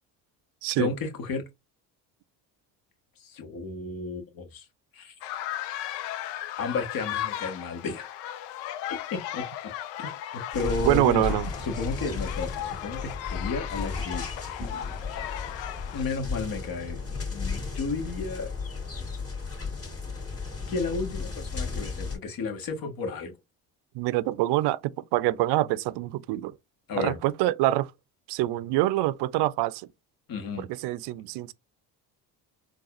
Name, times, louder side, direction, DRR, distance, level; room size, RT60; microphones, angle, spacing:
voice 1, 0.8-1.4 3.2-4.6 4.9-5.1 6.6-8.1 9.1-9.7 10.0-10.1 10.5-14.2 15.9-17.0 17.3-18.5 20.7-23.3 26.9-27.2 30.3-30.7, left 4 dB, 50° left, 1.4 m, -32 dB
sound 1, 5.2-16.0, left 12 dB, 70° left, 0.6 m, -36 dB
sound 2, 10.5-22.2, left 4 dB, 30° left, 2.2 m, -34 dB
voice 2, 10.8-11.5 23.9-26.5 27.0-27.9 28.3-29.9 30.6-31.5, right 16 dB, 70° right, 0.5 m, -25 dB
3.9 x 2.5 x 2.4 m
supercardioid pair, 80°, 43 cm